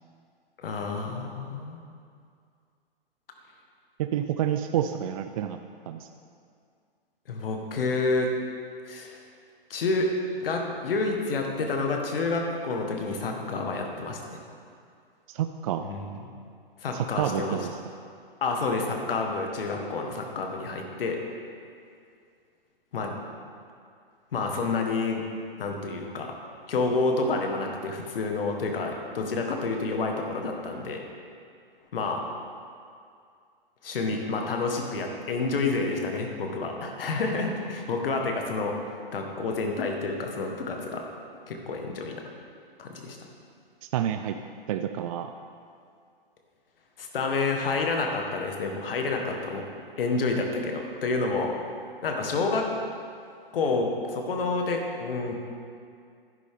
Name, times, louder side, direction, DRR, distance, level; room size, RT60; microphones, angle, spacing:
voice 1, 0.6-1.8 7.3-8.3 8.8-9.2 9.7-10.1 10.4-14.3 15.8-16.1 16.8-17.6 18.4-21.2 22.9-23.2 24.3-25.2 25.6-26.3 26.7-31.0 31.9-32.2 33.8-38.8 39.1-41.0 41.5-42.2 42.8-43.2 47.0-49.6 50.0-51.5 52.0-52.7 53.5-55.4, left 3 dB, 70° left, 2 dB, 1.7 m, -29 dB
voice 2, 4.0-5.6 5.9-6.1 15.3-15.9 16.9-17.8 43.8-44.4 44.7-45.3, right 10 dB, 40° right, 7 dB, 0.4 m, -29 dB
11.0 x 10.5 x 3.7 m, 2.3 s
hypercardioid pair, 135°, 29 cm